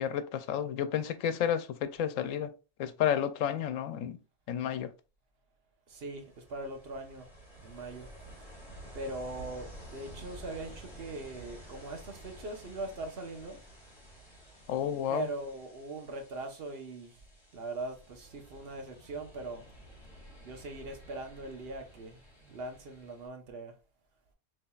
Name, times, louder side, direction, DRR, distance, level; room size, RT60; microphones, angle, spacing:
voice 1, 0.0-2.5 2.8-4.2 4.5-4.9 14.7-15.3, left 9 dB, 85° left, 1.0 m, -31 dB
Ocean, 5.9-23.3, right 1 dB, 20° left, 2.6 m, -52 dB
voice 2, 5.9-7.3 7.6-8.1 8.9-13.6 15.1-17.2 17.5-19.7 20.4-23.7, right 2 dB, 55° right, 1.2 m, -41 dB
6.9 x 3.3 x 2.4 m
omnidirectional pair, 1.3 m